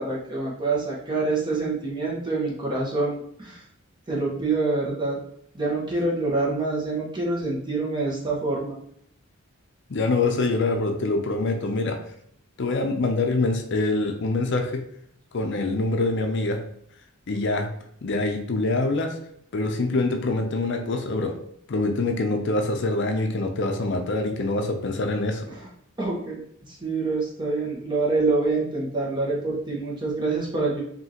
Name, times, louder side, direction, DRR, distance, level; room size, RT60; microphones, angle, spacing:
voice 1, 0.0-3.6 4.1-5.2 5.5-8.8 26.0-26.4 26.8-30.8, right 3 dB, 20° right, -4 dB, 1.2 m, -26 dB
voice 2, 9.9-12.0 12.6-14.8 15.3-16.6 17.3-17.7 18.0-19.2 19.5-21.3 21.7-25.5, left 2 dB, 55° left, 5 dB, 0.5 m, -25 dB
5.2 x 2.8 x 2.9 m, 0.69 s
head